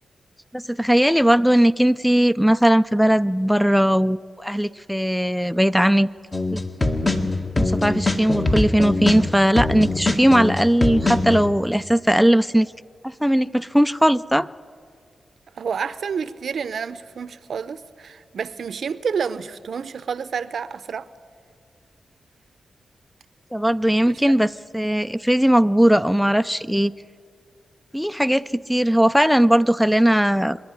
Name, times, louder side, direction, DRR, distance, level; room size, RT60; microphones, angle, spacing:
voice 1, 0.5-6.1 6.5-6.6 7.6-12.7 13.0-14.5 23.5-26.9 27.9-30.6, equal, ahead, 0.4 m, -18 dB
sound 1, 6.3-11.4, left 2 dB, 30° left, 1.8 m, -22 dB
voice 2, 15.5-21.1 24.1-24.3, right 6 dB, 75° right, 0.6 m, -29 dB
25.0 x 11.0 x 9.9 m
cardioid pair, 60°, 0 cm